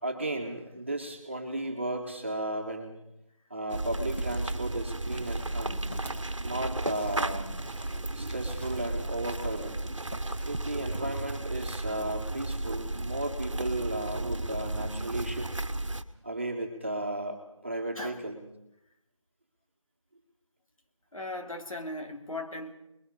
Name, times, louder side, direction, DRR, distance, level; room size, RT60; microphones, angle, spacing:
voice 1, 0.0-2.9 3.5-5.9 6.4-7.5 8.1-9.8 10.4-15.5 16.2-17.4 17.6-18.4, right 1 dB, 20° right, 2 dB, 1.6 m, -34 dB
sound 1, 3.7-11.0, equal, 20° left, 1.0 m, -48 dB
sound 2, 3.7-16.0, right 2 dB, 65° right, 1.3 m, -34 dB
voice 2, 21.1-22.7, left 1 dB, 85° left, 4 dB, 2.8 m, -38 dB
29.5 x 21.5 x 4.1 m, 0.85 s
figure-of-eight pair, 180°, 17 cm